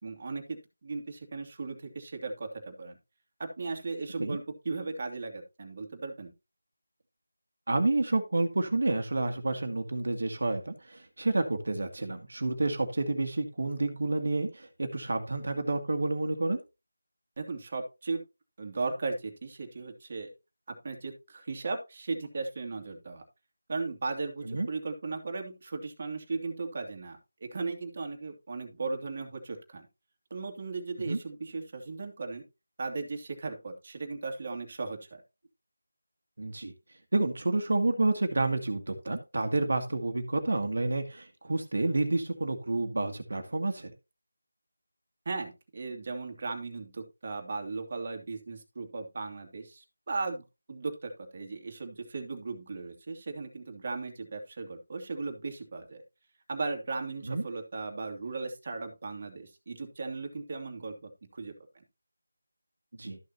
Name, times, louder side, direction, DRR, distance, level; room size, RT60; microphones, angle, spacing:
voice 1, 0.0-3.0 3.4-6.3 17.4-18.2 18.6-20.3 20.7-23.2 23.7-29.9 30.3-32.4 32.8-35.2 45.3-56.0 56.5-61.5, right 3 dB, 35° right, 4 dB, 2.4 m, -37 dB
voice 2, 7.7-16.6 24.4-24.7 31.1-31.2 36.4-36.7 37.1-43.9 57.3-57.4 63.0-63.2, right 2 dB, 60° right, 5 dB, 2.0 m, -29 dB
13.5 x 6.6 x 2.9 m, 0.26 s
figure-of-eight pair, 170°, 0 cm